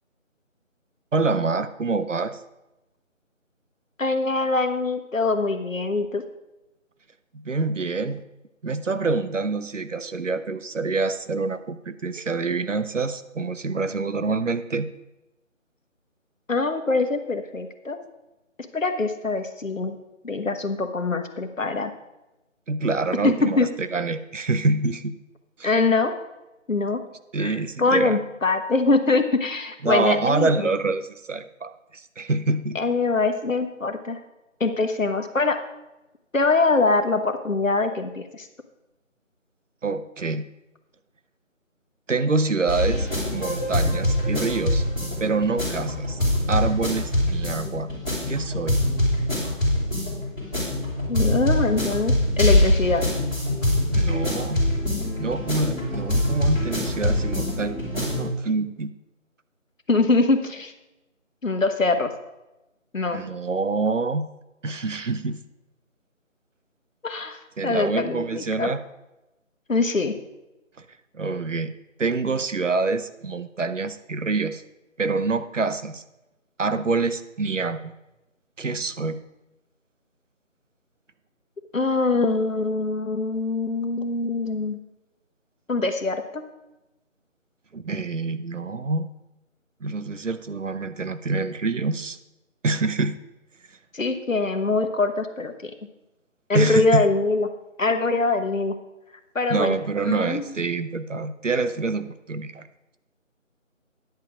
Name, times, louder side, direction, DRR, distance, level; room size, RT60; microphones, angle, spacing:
voice 1, 1.1-2.4 7.3-8.2 8.6-14.9 22.7-25.1 25.6-25.7 27.3-28.2 29.8-32.8 39.8-40.5 42.1-44.8 45.2-46.2 46.5-47.9 48.3-48.8 53.9-54.7 55.2-58.9 63.1-64.3 64.6-65.4 67.6-68.8 71.1-71.7 72.0-74.6 75.0-76.0 76.6-77.9 78.6-79.2 87.7-89.1 89.8-92.2 92.6-93.2 96.5-97.0 99.5-102.7, right 3 dB, 65° right, 12 dB, 0.8 m, -26 dB
voice 2, 4.0-6.2 16.5-18.0 18.7-19.9 20.2-21.9 23.2-23.7 25.6-26.1 26.7-27.0 27.4-30.7 32.7-34.2 34.6-35.6 36.3-38.5 51.1-53.0 59.9-60.7 61.4-62.1 62.9-63.2 67.0-68.7 69.7-70.1 81.7-84.8 85.7-86.4 93.9-95.7 96.5-97.5 97.8-98.8 99.3-99.8 100.1-100.4, left 3 dB, 70° left, 6 dB, 1.4 m, -23 dB
sound 1, 42.7-58.3, left 1 dB, ahead, 1.6 m, -24 dB
10.5 x 7.6 x 4.9 m, 0.98 s
figure-of-eight pair, 165°, 40 cm